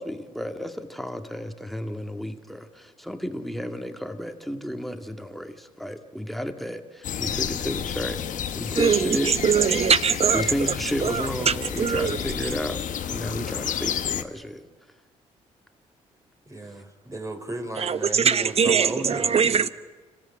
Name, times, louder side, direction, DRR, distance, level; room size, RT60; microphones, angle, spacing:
voice 1, 0.0-9.3 10.3-14.7, equal, ahead, 1.9 m, -32 dB
sound 1, 7.0-14.2, left 9 dB, 60° left, 1.1 m, -31 dB
voice 2, 8.8-10.7 11.0-12.2 17.8-19.7, right 6 dB, 45° right, 1.0 m, -22 dB
voice 3, 16.5-19.3, right 1 dB, 20° right, 3.4 m, -35 dB
26.5 x 14.5 x 8.7 m
supercardioid pair, 65°, 15 cm